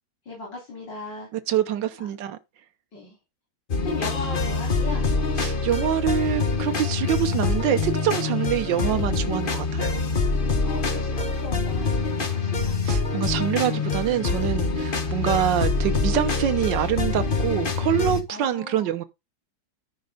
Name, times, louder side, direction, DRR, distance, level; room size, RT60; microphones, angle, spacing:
voice 1, 0.3-1.3 2.0-2.1 2.9-3.2 3.8-5.0 10.6-12.8 18.3-18.9, left 3 dB, 75° left, 4.6 m, -37 dB
voice 2, 1.3-2.4 5.4-10.0 12.8-19.0, right 10 dB, 80° right, 1.6 m, -25 dB
sound 1, 3.7-18.2, left 4 dB, 30° left, 1.4 m, -25 dB
14.0 x 5.3 x 3.8 m
omnidirectional pair, 2.0 m